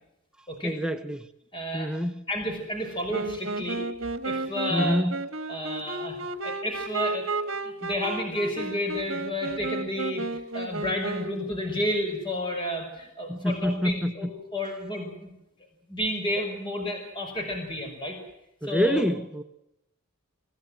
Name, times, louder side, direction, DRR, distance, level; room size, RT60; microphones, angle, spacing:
voice 1, 0.6-1.3 1.7-2.2 4.7-5.2 13.3-14.3 18.6-19.4, equal, 5° right, 0.8 m, -27 dB
voice 2, 1.5-1.9 2.3-3.8 4.2-5.0 5.5-6.2 6.4-7.3 7.6-15.3 15.9-18.2 18.6-19.0, left 1 dB, 25° left, 5.6 m, -31 dB
Wind instrument woodwind instrument, 3.1-11.5, right 3 dB, 65° right, 1.6 m, -33 dB
26.5 x 17.0 x 7.7 m
head